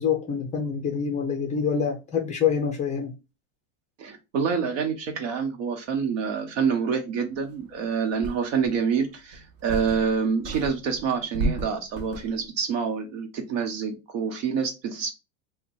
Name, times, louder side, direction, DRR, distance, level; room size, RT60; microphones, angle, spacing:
voice 1, 0.0-3.2, left 7 dB, 20° left, 0.4 m, -26 dB
voice 2, 4.0-15.1, right 6 dB, 70° right, 1.1 m, -27 dB
sound 1, 7.6-7.7 8.2-8.8 9.3-10.2 10.4-12.4, right 2 dB, 40° right, 0.8 m, -32 dB
2.8 x 2.2 x 4.2 m
supercardioid pair, 140°, 39 cm